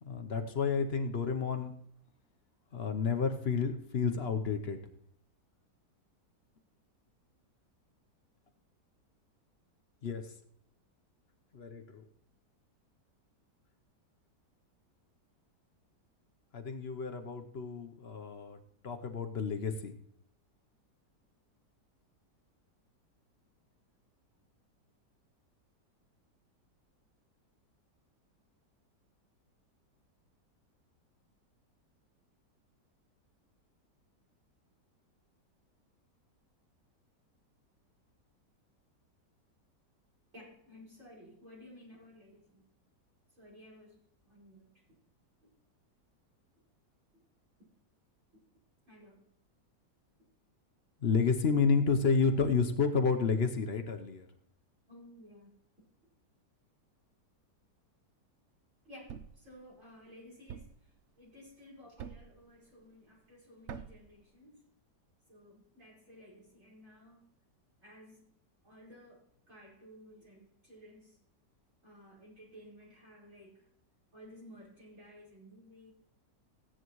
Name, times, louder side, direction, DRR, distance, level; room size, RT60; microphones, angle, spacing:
voice 1, 0.0-1.7 2.7-4.8 10.0-10.3 11.5-12.0 16.5-18.6 18.8-19.9 51.0-54.3, left 5 dB, 45° left, 6 dB, 0.8 m, -30 dB
voice 2, 40.3-42.6 43.4-44.7 45.4-45.5 48.9-49.2 54.9-55.5 58.8-64.6 65.3-67.3 67.8-68.3 68.6-71.2 71.8-73.7 74.1-75.9, equal, 45° right, -5 dB, 5.7 m, -55 dB
Thump thud, 59.1-59.5 60.5-60.9 62.0-62.4 63.7-64.1, right 7 dB, 80° right, 0.6 m, -45 dB
15.0 x 10.0 x 3.1 m, 0.69 s
omnidirectional pair, 1.9 m